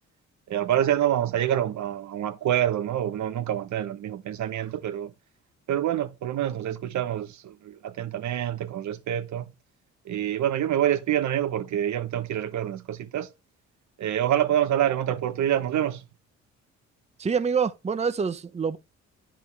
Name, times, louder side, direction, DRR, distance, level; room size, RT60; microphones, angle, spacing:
voice 1, 0.5-5.1 5.7-9.5 10.0-13.3 14.0-16.0, right 11 dB, 70° right, 1.2 m, -26 dB
voice 2, 17.2-18.8, right 6 dB, 20° right, 0.7 m, -26 dB
10.5 x 5.1 x 3.6 m
cardioid pair, 90°, 30 cm